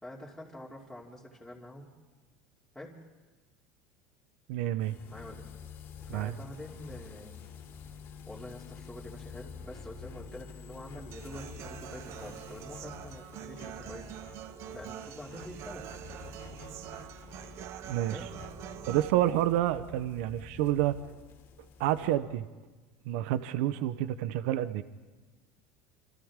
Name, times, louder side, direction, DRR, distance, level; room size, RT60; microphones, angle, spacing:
voice 1, 0.0-1.9 2.7-3.0 5.1-5.5 6.0-7.4 8.3-14.1 14.7-15.9 18.1-18.3, left 1 dB, ahead, -6 dB, 2.9 m, -46 dB
voice 2, 4.5-5.0 6.1-6.3 17.9-18.2 18.9-21.0 21.8-22.4 23.0-24.8, right 13 dB, 75° right, 13 dB, 0.9 m, -29 dB
sound 1, 4.8-22.2, left 5 dB, 45° left, 2.8 m, -48 dB
Human voice / Acoustic guitar, 11.1-19.1, right 12 dB, 50° right, 0.7 m, -45 dB
27.5 x 26.5 x 3.7 m, 1.3 s
supercardioid pair, 135°, 6 cm